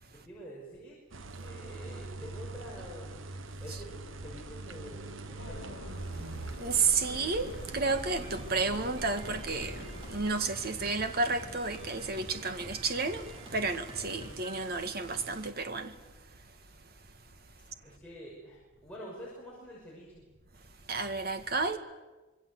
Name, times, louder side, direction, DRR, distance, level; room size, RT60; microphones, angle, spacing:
voice 1, 0.1-1.0 1.3-3.2 3.6-5.7 17.8-20.3, equal, 5° left, 6.1 m, -47 dB
sound 1, 1.1-15.5, right 3 dB, 75° right, 1.2 m, -45 dB
sound 2, 5.4-10.5, left 1 dB, 55° left, 2.6 m, -45 dB
voice 2, 6.6-16.0 20.9-21.8, right 4 dB, 50° right, 1.9 m, -31 dB
Drum kit, 7.5-15.3, right 1 dB, 25° right, 4.3 m, -48 dB
26.0 x 22.5 x 8.1 m
head